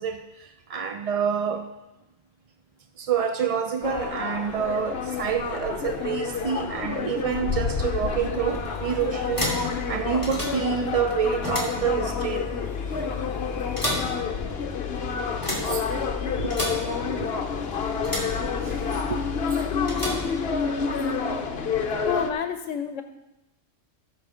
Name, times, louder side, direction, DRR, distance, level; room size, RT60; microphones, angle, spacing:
voice 1, 0.0-1.7 3.0-12.5 12.9-13.0 15.6-16.1 16.4-17.4 18.2-18.3 18.6-19.3 19.5-20.2, right 7 dB, 55° right, 6 dB, 0.4 m, -28 dB
sound 1, 3.8-22.3, left 5 dB, 55° left, 1.0 m, -29 dB
sound 2, 7.8-21.0, left 2 dB, 15° left, 2.4 m, -33 dB
voice 2, 22.0-23.0, left 8 dB, 80° left, 8 dB, 1.0 m, -28 dB
15.0 x 6.4 x 5.0 m, 0.98 s
omnidirectional pair, 1.3 m